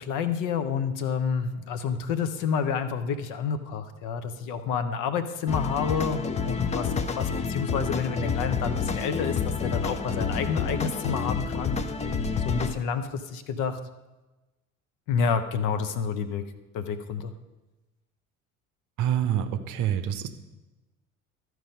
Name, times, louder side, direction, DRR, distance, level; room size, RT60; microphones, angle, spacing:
voice 1, 0.0-11.8 12.4-13.8 15.1-16.4 16.7-17.3, left 6 dB, 45° left, 10 dB, 0.8 m, -29 dB
sound 1, 5.5-12.7, left 5 dB, 15° left, 0.5 m, -29 dB
voice 2, 19.0-20.3, right 10 dB, 45° right, 10 dB, 0.8 m, -26 dB
13.5 x 4.7 x 5.2 m, 1.1 s
figure-of-eight pair, 60°, 41 cm